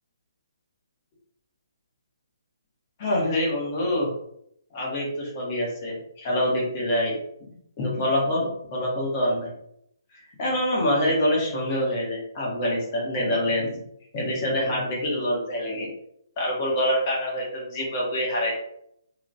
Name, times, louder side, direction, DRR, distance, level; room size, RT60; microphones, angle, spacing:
voice 1, 3.0-4.1 4.7-7.1 7.8-9.5 10.4-13.7 14.1-15.9 16.4-18.5, left 1 dB, 35° left, -4 dB, 1.4 m, -25 dB
3.0 x 2.8 x 2.7 m, 0.73 s
figure-of-eight pair, 140°, 2 cm